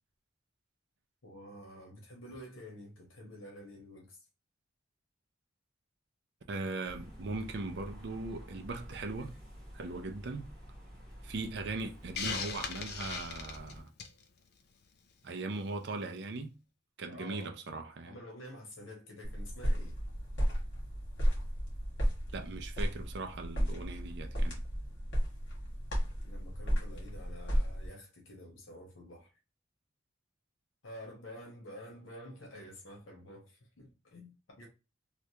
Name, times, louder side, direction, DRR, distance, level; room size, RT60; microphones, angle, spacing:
voice 1, 1.2-4.2 17.1-17.6 18.0-20.0 26.2-29.3 30.8-34.7, left 1 dB, 90° left, 1.1 m, -49 dB
voice 2, 6.5-9.3 9.7-10.5 11.2-13.9 15.2-16.5 17.0-18.1 22.3-24.6, right 3 dB, 60° right, 0.4 m, -39 dB
sound 1, 6.8-13.8, equal, 5° left, 1.1 m, -49 dB
Hiss, 12.2-14.2, left 6 dB, 50° left, 0.4 m, -38 dB
sound 2, 19.2-27.9, equal, 70° left, 1.8 m, -33 dB
3.2 x 2.4 x 2.8 m
head